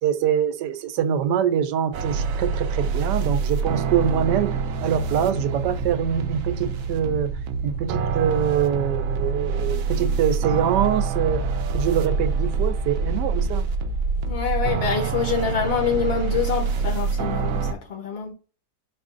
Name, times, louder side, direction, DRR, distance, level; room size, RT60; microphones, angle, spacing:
voice 1, 0.0-7.3 7.6-13.7, right 9 dB, 85° right, 1.2 m, -24 dB
sound 1, 1.9-17.7, right 5 dB, 70° right, 0.8 m, -26 dB
voice 2, 14.3-18.3, left 6 dB, 65° left, 0.6 m, -26 dB
4.7 x 2.5 x 3.6 m
omnidirectional pair, 1.8 m